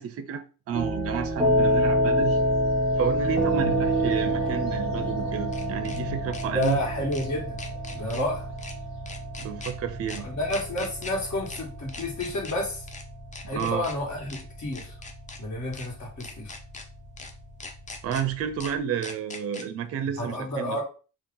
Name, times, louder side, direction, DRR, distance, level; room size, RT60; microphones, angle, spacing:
voice 1, 0.0-2.4 3.0-6.8 9.4-10.3 13.5-13.9 18.0-20.8, right 8 dB, 45° right, 0.4 m, -31 dB
sound 1, 0.7-18.7, equal, 5° right, 1.1 m, -28 dB
sound 2, 1.7-1.8 4.2-6.0 6.3-6.7 7.1-7.3 7.6-8.2 8.6-8.7 9.1-9.7 10.1-10.2 10.5-11.1 11.5-11.6 11.9-12.5 12.9-13.0 13.3-13.9 14.3-14.4 14.7-15.4 15.7-15.9 16.2-16.8 17.2-17.3 17.6-18.2 18.6-18.7 19.0-19.6, left 3 dB, 20° left, 0.4 m, -41 dB
sound 3, 2.3-4.2 4.7-4.8 5.1-5.2 5.4-6.5 6.8-8.1, left 9 dB, 75° left, 1.1 m, -43 dB
voice 2, 6.5-7.6 7.9-8.5 10.2-12.9 13.4-14.9 15.4-16.5 20.2-20.8, left 1 dB, 55° left, 1.5 m, -30 dB
2.8 x 2.4 x 3.7 m
cardioid pair, 125°, 34 cm